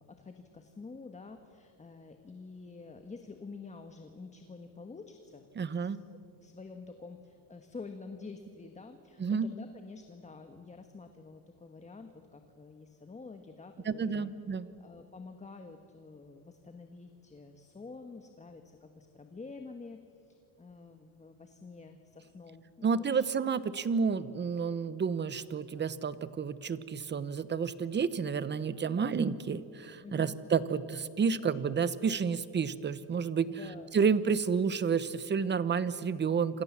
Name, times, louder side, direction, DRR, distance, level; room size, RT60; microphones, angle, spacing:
voice 1, 0.0-6.0 6.4-14.3 14.8-23.2 30.0-30.4 33.5-33.9, left 4 dB, 20° left, 6 dB, 1.4 m, -48 dB
voice 2, 5.6-6.0 9.2-9.5 13.8-14.7 22.8-33.5 33.9-36.6, right 6 dB, 30° right, 15 dB, 1.0 m, -30 dB
28.0 x 27.0 x 7.4 m, 2.5 s
cardioid pair, 150°, 39 cm